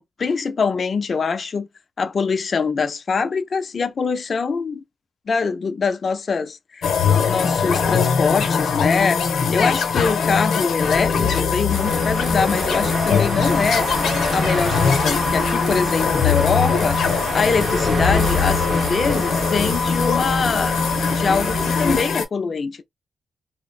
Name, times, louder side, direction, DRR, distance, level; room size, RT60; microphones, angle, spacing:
voice 1, 0.0-1.7 2.0-4.8 5.3-9.2 9.5-13.9 14.3-22.8, left 5 dB, 50° left, 0.5 m, -23 dB
sound 1, 6.8-22.2, left 6 dB, 80° left, 0.7 m, -21 dB
sound 2, 11.7-22.0, right 3 dB, 45° right, 0.7 m, -29 dB
3.4 x 2.0 x 2.3 m
cardioid pair, 95°, 0 cm